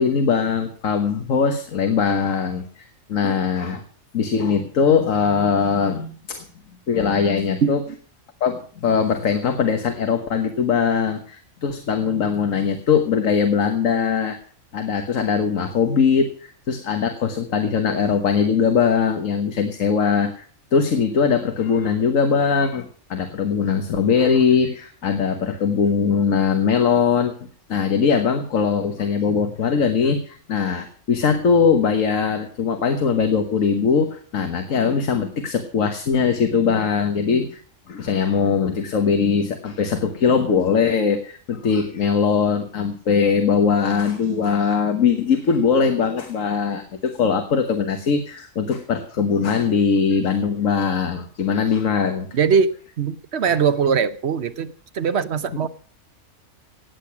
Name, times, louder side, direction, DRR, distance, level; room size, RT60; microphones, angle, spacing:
voice 1, 0.0-3.8 4.1-6.5 6.9-7.8 8.4-14.4 14.7-20.4 20.7-27.3 27.7-37.6 37.9-52.3, left 6 dB, 80° left, 6 dB, 1.6 m, -21 dB
voice 2, 52.3-52.7 53.0-55.7, right 6 dB, 60° right, 13 dB, 1.0 m, -21 dB
17.5 x 8.6 x 5.9 m, 0.43 s
omnidirectional pair, 1.4 m